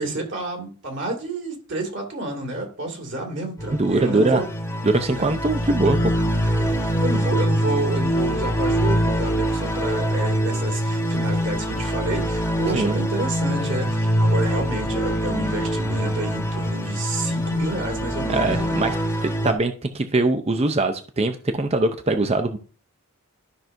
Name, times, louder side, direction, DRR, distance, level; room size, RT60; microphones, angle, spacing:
voice 1, 0.0-4.4 5.1-5.3 6.3-18.8, right 2 dB, 55° right, 1 dB, 2.5 m, -30 dB
sound 1, 3.6-19.5, equal, 15° left, 1.4 m, -24 dB
voice 2, 3.7-4.4 4.8-6.1 12.7-13.0 18.3-18.9 19.2-22.6, right 2 dB, 30° right, 7 dB, 0.6 m, -22 dB
12.5 x 6.0 x 2.6 m, 0.38 s
head